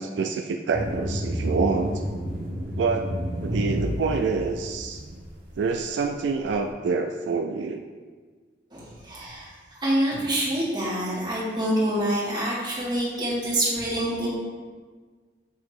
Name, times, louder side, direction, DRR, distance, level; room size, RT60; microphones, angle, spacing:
voice 1, 0.0-2.0 2.8-3.2 3.4-5.0 5.6-7.8, right 4 dB, 75° right, 4 dB, 0.3 m, -27 dB
sound 1, 0.7-5.3, equal, 50° right, 1.1 m, -30 dB
voice 2, 8.7-9.5 9.8-14.3, right 1 dB, 25° right, -7 dB, 1.6 m, -26 dB
7.2 x 2.8 x 4.7 m, 1.5 s
head